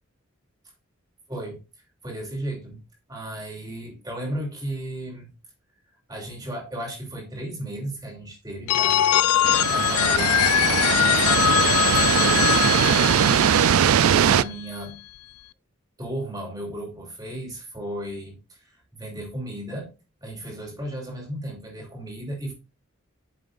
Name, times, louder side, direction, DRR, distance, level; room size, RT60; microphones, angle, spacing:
voice 1, 1.3-1.6 2.0-2.8 3.1-5.3 6.1-9.2 9.7-11.7 12.2-15.0 16.0-19.9 20.2-22.5, right 1 dB, 20° right, 2.9 m, -35 dB
Telephone, 8.7-14.5, left 12 dB, 90° left, 0.4 m, -22 dB
sound 1, 9.4-14.4, right 9 dB, 75° right, 0.3 m, -21 dB
9.1 x 6.6 x 2.5 m
head